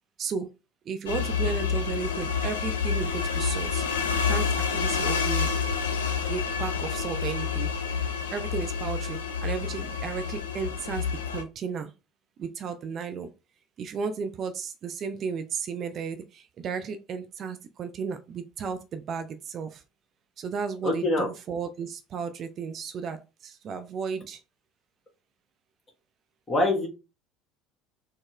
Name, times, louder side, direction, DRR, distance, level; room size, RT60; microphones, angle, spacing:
voice 1, 0.2-0.5 0.9-3.9 4.1-5.5 6.3-7.7 8.3-11.9 12.4-13.3 13.8-19.8 20.4-24.4, right 5 dB, 40° right, 0.3 m, -34 dB
sound 1, 1.1-11.4, left 6 dB, 70° left, 0.4 m, -28 dB
voice 2, 20.8-21.3 26.5-26.9, left 2 dB, 25° left, 1.3 m, -24 dB
4.1 x 2.0 x 3.0 m
figure-of-eight pair, 65°, 0 cm